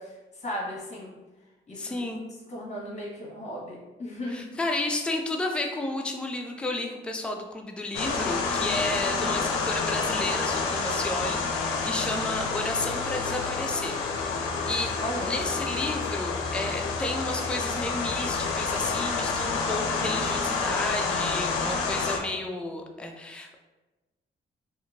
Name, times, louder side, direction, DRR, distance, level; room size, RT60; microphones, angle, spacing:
voice 1, 0.4-1.1 1.7-2.0 2.5-4.4 8.5-8.9 15.0-15.3, left 1 dB, 35° left, -5 dB, 1.3 m, -36 dB
voice 2, 1.8-2.2 4.3-23.6, left 2 dB, 5° left, 3 dB, 0.4 m, -32 dB
sound 1, 7.9-22.2, left 4 dB, 90° left, 0.4 m, -29 dB
2.8 x 2.5 x 2.6 m, 1.1 s
supercardioid pair, 65°, 21 cm